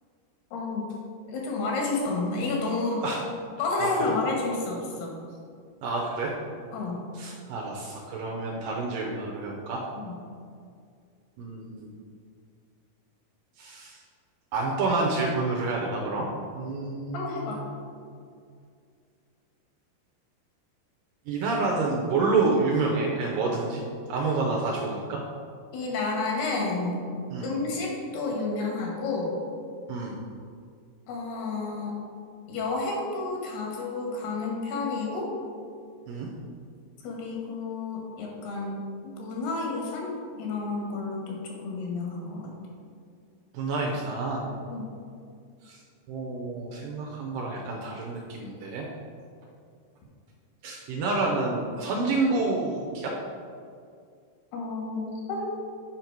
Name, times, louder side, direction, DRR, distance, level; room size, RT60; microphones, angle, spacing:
voice 1, 0.5-0.9 1.3-3.0 3.6-5.1 6.7-7.1 10.0-10.2 17.1-17.6 25.7-27.0 27.4-29.4 31.1-32.0 32.5-35.3 37.0-40.1 40.4-42.5 44.7-44.9 54.5-55.5, left 3 dB, 75° left, -1 dB, 3.3 m, -30 dB
voice 2, 5.8-6.3 7.1-9.8 11.4-11.9 13.6-14.0 14.5-16.3 16.5-17.6 21.3-23.8 24.1-25.2 27.3-27.5 29.9-30.2 36.1-36.3 43.5-44.5 45.6-45.8 46.1-48.9 50.6-53.2, right 3 dB, 75° right, -1 dB, 2.1 m, -28 dB
7.9 x 5.4 x 4.6 m, 2.3 s
omnidirectional pair, 4.6 m